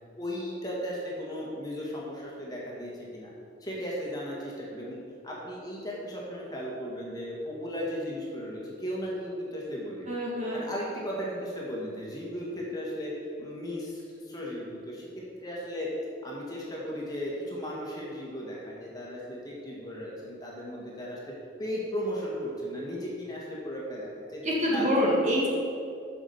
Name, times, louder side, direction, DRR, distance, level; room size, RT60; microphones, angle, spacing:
voice 1, 0.2-3.3 3.6-5.0 5.2-10.1 10.5-13.1 13.4-15.1 15.4-15.9 16.2-21.2 21.6-24.4 24.7-24.9, equal, 20° left, -5 dB, 1.7 m, -36 dB
voice 2, 10.1-10.6 24.4-25.5, equal, 40° right, -4 dB, 1.9 m, -26 dB
7.2 x 6.1 x 7.0 m, 2.6 s
head